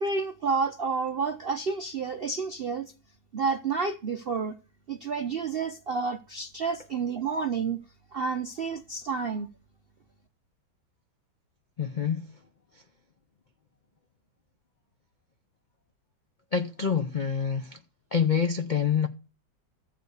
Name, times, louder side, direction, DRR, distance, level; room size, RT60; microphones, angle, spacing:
voice 1, 0.0-2.9 3.3-4.5 4.9-7.8 8.1-9.5, right 5 dB, 65° right, 0.6 m, -30 dB
voice 2, 11.8-12.3 16.5-17.8 18.1-19.1, left 7 dB, 60° left, 0.4 m, -26 dB
14.0 x 5.1 x 8.0 m
omnidirectional pair, 1.9 m